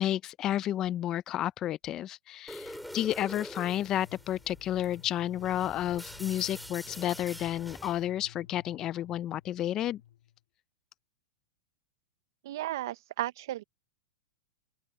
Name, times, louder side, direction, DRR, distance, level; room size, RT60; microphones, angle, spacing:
voice 1, 0.0-10.0, left 12 dB, 25° left, 0.3 m, -31 dB
sound 1, 2.5-8.1, equal, ahead, 3.3 m, -45 dB
sound 2, 2.6-10.4, left 12 dB, 75° left, 2.8 m, -54 dB
voice 2, 12.4-13.6, right 14 dB, 60° right, 0.5 m, -34 dB
open air
supercardioid pair, 160°, 2 cm